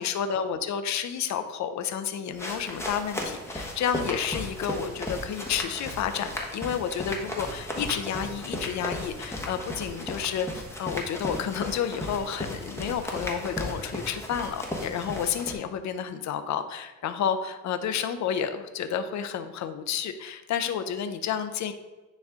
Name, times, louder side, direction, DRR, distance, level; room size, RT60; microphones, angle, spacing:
voice 1, 0.0-21.7, left 8 dB, 65° left, 9 dB, 0.7 m, -30 dB
sound 1, 2.3-15.5, left 1 dB, 10° left, 1.2 m, -35 dB
9.7 x 3.3 x 3.7 m, 1.1 s
cardioid pair, 90°, 30 cm